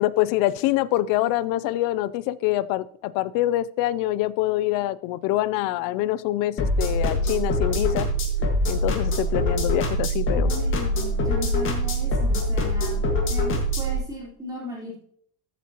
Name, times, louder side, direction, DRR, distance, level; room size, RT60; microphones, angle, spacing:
voice 1, 0.0-8.1 8.7-10.5, left 15 dB, 55° left, 19 dB, 0.5 m, -25 dB
sound 1, 6.6-14.0, equal, 30° left, 1.7 m, -24 dB
voice 2, 10.3-13.0 13.3-15.0, left 1 dB, 10° right, -5 dB, 4.0 m, -36 dB
13.5 x 8.2 x 2.9 m, 0.63 s
cardioid pair, 170°, 43 cm